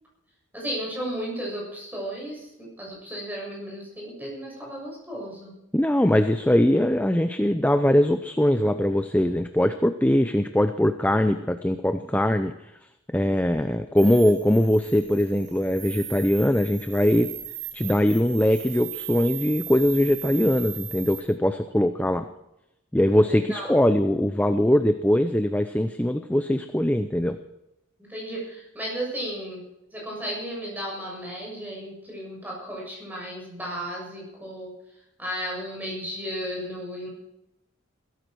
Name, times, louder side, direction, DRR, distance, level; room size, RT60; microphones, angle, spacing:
voice 1, 0.5-5.5 23.2-23.7 28.1-29.6 29.9-34.7 35.2-37.1, equal, 10° right, -3 dB, 7.2 m, -34 dB
voice 2, 5.7-12.7 13.1-17.3 17.7-22.3 22.9-27.4, left 1 dB, 10° left, 8 dB, 0.6 m, -21 dB
sound 1, 14.0-21.2, right 9 dB, 65° right, 2.8 m, -38 dB
16.5 x 14.5 x 4.7 m, 0.87 s
head